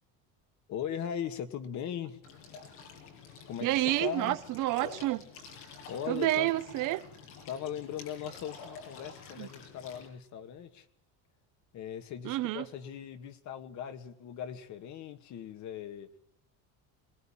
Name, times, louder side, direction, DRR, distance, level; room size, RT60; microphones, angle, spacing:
voice 1, 0.7-2.2 3.5-4.4 5.9-6.5 7.5-10.9 11.7-16.1, left 9 dB, 50° left, 2.1 m, -39 dB
sound 1, 2.2-10.1, left 5 dB, 90° left, 7.7 m, -49 dB
voice 2, 3.6-5.2 6.1-7.0 9.4-9.5 12.2-12.6, right 16 dB, 55° right, 1.2 m, -29 dB
23.0 x 20.5 x 8.9 m
cardioid pair, 150°, 37 cm